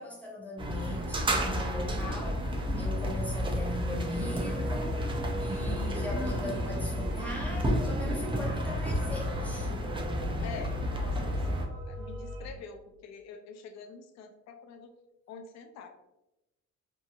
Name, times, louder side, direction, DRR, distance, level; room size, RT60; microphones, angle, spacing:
voice 1, 0.0-2.5 2.8-5.1 5.4-9.7, left 2 dB, 5° left, 0.9 m, -40 dB
sound 1, 0.6-11.7, equal, 15° right, 0.4 m, -31 dB
sound 2, 3.4-12.5, left 2 dB, 75° right, 0.6 m, -42 dB
voice 2, 10.4-11.5 11.9-14.9 15.3-15.9, left 5 dB, 65° left, 0.4 m, -46 dB
2.7 x 2.6 x 2.4 m
cardioid pair, 90°, 30 cm